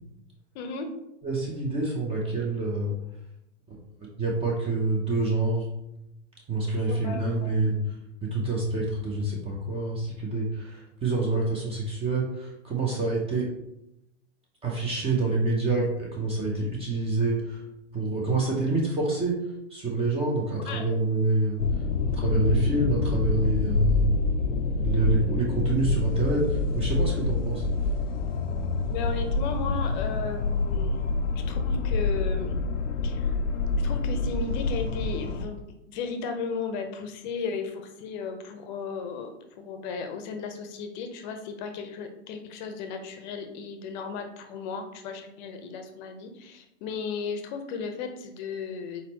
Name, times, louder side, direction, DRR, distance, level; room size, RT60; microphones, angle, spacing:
voice 1, 0.5-0.9 6.9-7.6 20.7-20.9 24.9-25.0 28.9-31.1 31.3-32.6 33.0-33.4 33.8-49.0, left 5 dB, 40° left, 6 dB, 0.7 m, -35 dB
voice 2, 1.2-3.0 3.7-3.8 4.2-5.7 6.5-8.0 8.2-13.5 14.6-17.6 17.9-19.4 19.7-21.6 22.1-24.1 24.8-27.6, right 2 dB, 15° right, -2 dB, 0.7 m, -27 dB
sound 1, 21.6-35.5, left 3 dB, 85° left, 0.5 m, -27 dB
4.2 x 4.1 x 2.9 m, 0.84 s
figure-of-eight pair, 110°, 37 cm